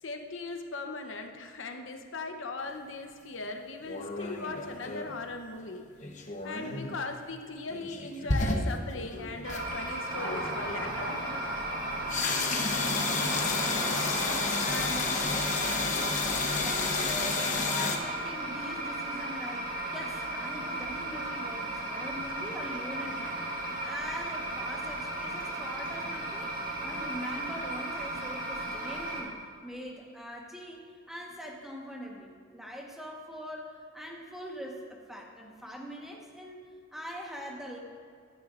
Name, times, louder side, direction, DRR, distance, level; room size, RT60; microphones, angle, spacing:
voice 1, 0.0-5.9 6.1-11.6, left 3 dB, 65° left, 4 dB, 0.8 m, -39 dB
sound 1, 3.9-5.2 6.0-7.0 7.7-9.7 10.2-10.6 12.1-18.0, left 3 dB, 40° left, 1.0 m, -31 dB
sound 2, 9.4-29.2, right 1 dB, 45° right, 2.0 m, -35 dB
sound 3, 10.1-15.4, equal, 25° right, 3.2 m, -39 dB
voice 2, 13.0-23.4 23.8-26.5 26.8-29.3 29.6-37.8, equal, ahead, -1 dB, 1.2 m, -42 dB
15.0 x 12.0 x 2.5 m, 2.1 s
head